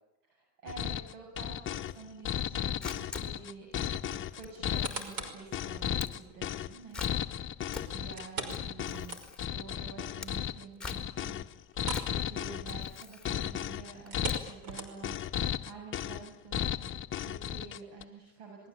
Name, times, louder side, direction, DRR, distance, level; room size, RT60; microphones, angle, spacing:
voice 1, 0.2-3.7 4.1-7.0 7.9-9.2 9.5-11.4 11.8-18.7, right 4 dB, 70° right, 1 dB, 7.4 m, -49 dB
sound 1, 0.7-18.0, left 10 dB, 25° left, 1.0 m, -35 dB
Camera, 2.5-14.8, left 4 dB, ahead, 3.5 m, -47 dB
sound 2, 4.5-5.5 6.0-6.1 8.2-9.6 10.0-10.1 10.5-10.6 11.7-12.2 12.4-12.7 14.0-15.2 15.8-15.9, right 3 dB, 45° right, 5.6 m, -40 dB
27.5 x 21.0 x 8.7 m, 0.88 s
supercardioid pair, 115°, 47 cm